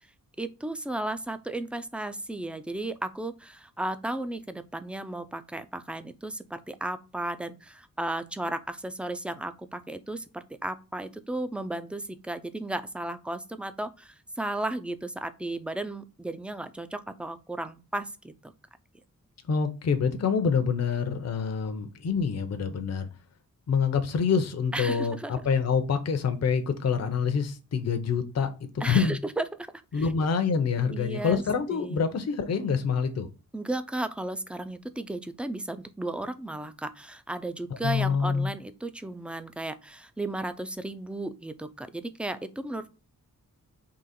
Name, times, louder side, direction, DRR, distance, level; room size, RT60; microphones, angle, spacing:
voice 1, 0.4-18.5 24.7-25.3 28.8-29.4 29.9-30.1 30.9-31.4 31.7-32.1 33.5-42.9, right 1 dB, 5° right, 10 dB, 0.3 m, -34 dB
voice 2, 19.5-23.1 23.7-29.2 29.9-33.3 37.7-38.5, left 6 dB, 50° left, 7 dB, 0.6 m, -26 dB
3.8 x 2.9 x 4.1 m, 0.32 s
wide cardioid pair, 130°, 33 cm